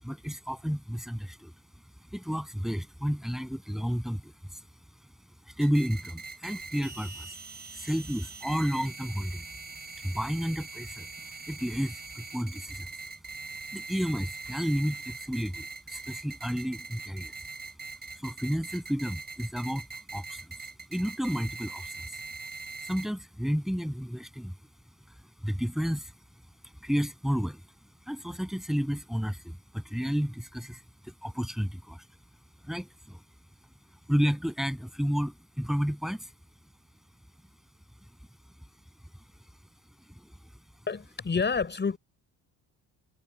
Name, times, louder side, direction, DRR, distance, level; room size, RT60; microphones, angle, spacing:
voice 1, 0.0-1.5 2.1-4.6 5.4-7.4 7.7-9.5 10.0-13.0 13.7-17.3 18.1-19.9 20.1-20.6 20.9-22.2 22.8-24.6 25.1-26.1 26.8-27.6 28.1-32.1 32.6-33.2 34.1-36.3 40.1-40.3, equal, ahead, 7.6 m, -32 dB
sound 1, 5.6-23.1, right 4 dB, 25° right, 7.3 m, -42 dB
voice 2, 40.9-42.0, left 5 dB, 25° left, 5.7 m, -28 dB
cardioid pair, 165°, 42 cm